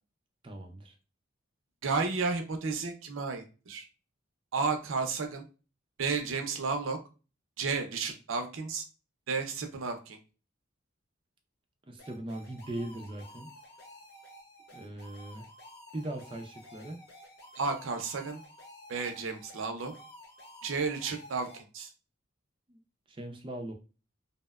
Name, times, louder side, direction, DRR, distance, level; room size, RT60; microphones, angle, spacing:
voice 1, 0.4-0.9 11.9-13.5 14.7-15.5 15.9-17.0 22.7-22.8 23.1-23.7, right 1 dB, 25° right, 4 dB, 0.3 m, -40 dB
voice 2, 1.8-3.8 4.5-5.4 6.0-7.0 7.6-8.8 9.3-10.2 17.6-18.4 18.9-19.9 20.6-21.9, right 4 dB, 80° right, 5 dB, 0.5 m, -32 dB
sound 1, 12.0-21.6, left 1 dB, 50° left, 0.7 m, -52 dB
2.7 x 2.1 x 2.2 m, 0.33 s
head